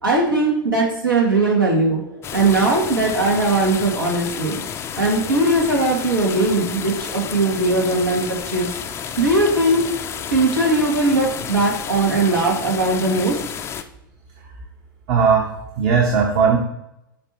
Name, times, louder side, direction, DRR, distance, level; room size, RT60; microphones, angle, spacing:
voice 1, 0.0-4.6 5.0-8.7 9.2-9.8 10.3-13.4, right 2 dB, 80° right, -1 dB, 1.9 m, -19 dB
sound 1, 2.2-13.8, left 8 dB, 20° left, 0.5 m, -31 dB
voice 2, 15.1-15.5 15.8-16.6, right 6 dB, 40° right, 0 dB, 1.1 m, -17 dB
8.6 x 3.0 x 4.3 m, 0.83 s
figure-of-eight pair, 95°, 11 cm